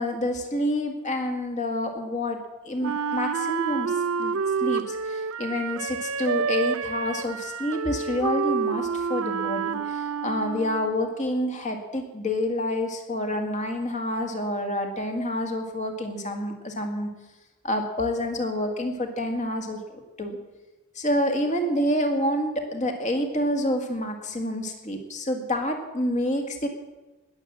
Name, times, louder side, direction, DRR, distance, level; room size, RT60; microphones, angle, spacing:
voice 1, 0.0-3.9 4.2-17.1 17.6-19.8 20.2-20.4 21.0-26.7, left 1 dB, 35° left, 4 dB, 1.9 m, -28 dB
Wind instrument woodwind instrument, 2.8-11.0, right 5 dB, 70° right, 0.6 m, -28 dB
19.5 x 7.4 x 7.7 m, 1.1 s
head